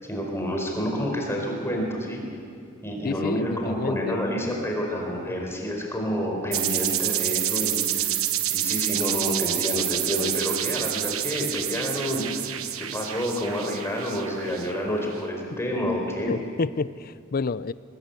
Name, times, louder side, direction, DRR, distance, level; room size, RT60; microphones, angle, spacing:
voice 1, 0.0-2.2 2.8-8.2 8.5-12.5 12.8-16.3, equal, 10° left, 0 dB, 4.5 m, -29 dB
voice 2, 3.0-4.2 16.3-17.7, left 4 dB, 45° left, 17 dB, 0.5 m, -29 dB
sound 1, 6.5-15.0, right 12 dB, 70° right, 1.1 m, -28 dB
25.0 x 20.0 x 8.4 m, 2.3 s
head